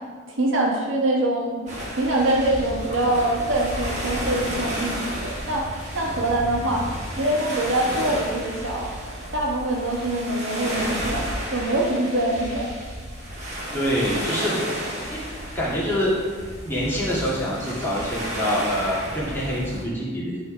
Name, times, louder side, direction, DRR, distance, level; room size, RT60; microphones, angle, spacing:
voice 1, 0.4-1.7 2.0-6.9 7.2-8.9 9.3-12.7, right 1 dB, 70° right, -2 dB, 1.6 m, -24 dB
sound 1, 1.7-19.8, equal, 35° right, 2.0 m, -32 dB
voice 2, 6.4-6.7 13.7-14.5 15.1-15.2 15.5-16.1 16.6-20.3, equal, 10° left, -8 dB, 2.3 m, -26 dB
11.0 x 4.1 x 5.1 m, 1.5 s
head